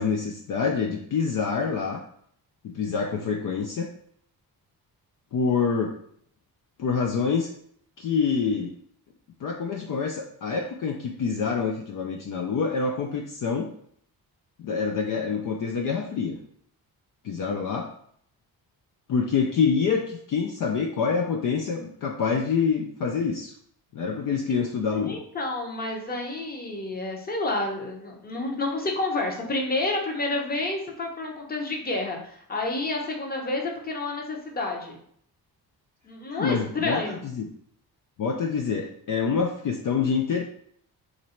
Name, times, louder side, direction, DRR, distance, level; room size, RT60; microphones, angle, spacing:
voice 1, 0.0-2.0 2.6-3.9 5.3-5.9 6.8-7.5 8.0-8.7 9.4-13.7 14.6-16.4 17.2-17.9 19.1-23.5 23.9-25.2 36.3-37.5 38.2-40.4, left 5 dB, 55° left, 2 dB, 0.5 m, -26 dB
voice 2, 25.1-35.0 36.0-37.2, left 2 dB, 25° left, 0 dB, 0.8 m, -29 dB
3.0 x 2.6 x 4.3 m, 0.64 s
cardioid pair, 125°, 39 cm